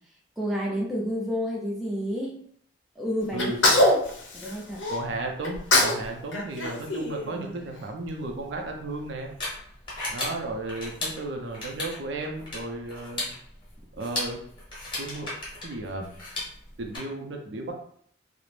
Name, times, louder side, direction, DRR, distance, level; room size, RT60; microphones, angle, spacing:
voice 1, 0.4-2.4 3.0-3.5 4.3-4.8, equal, ahead, -4 dB, 0.4 m, -30 dB
voice 2, 3.3-3.9 4.9-9.3 10.1-13.3 14.0-14.4 15.0-15.3 15.6-16.1 16.8-17.8, right 2 dB, 75° right, 2 dB, 0.5 m, -34 dB
Sneeze, 3.4-5.0 5.4-6.0 6.3-7.8, left 1 dB, 85° left, 0.6 m, -23 dB
sound 1, 8.3-17.0, left 2 dB, 25° left, 0.9 m, -36 dB
2.4 x 2.0 x 3.1 m, 0.63 s
head